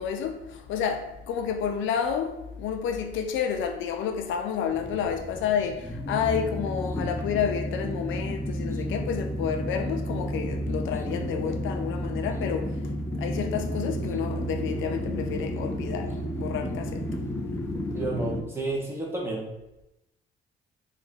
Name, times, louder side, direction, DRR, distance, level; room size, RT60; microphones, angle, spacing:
voice 1, 0.0-17.0, left 7 dB, 80° left, 0.4 m, -30 dB
sound 1, 4.7-18.4, equal, 10° left, 0.4 m, -32 dB
voice 2, 17.9-19.5, right 2 dB, 10° right, 1.1 m, -31 dB
2.8 x 2.5 x 4.0 m
cardioid pair, 90°, 20 cm